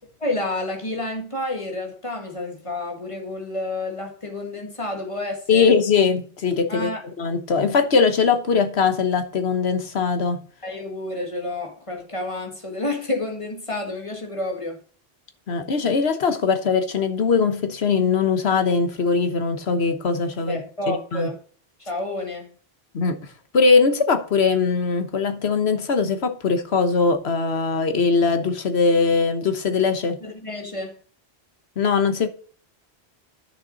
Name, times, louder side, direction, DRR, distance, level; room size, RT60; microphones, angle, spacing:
voice 1, 0.2-5.7 6.7-7.0 10.6-14.8 20.5-21.4 21.9-22.5 30.2-31.0, left 2 dB, 30° left, 1.9 m, -29 dB
voice 2, 5.5-6.9 7.2-10.4 15.5-20.6 20.9-21.3 22.9-23.2 23.5-30.2 31.8-32.3, left 5 dB, 75° left, 1.4 m, -21 dB
10.5 x 6.6 x 4.1 m
omnidirectional pair, 1.1 m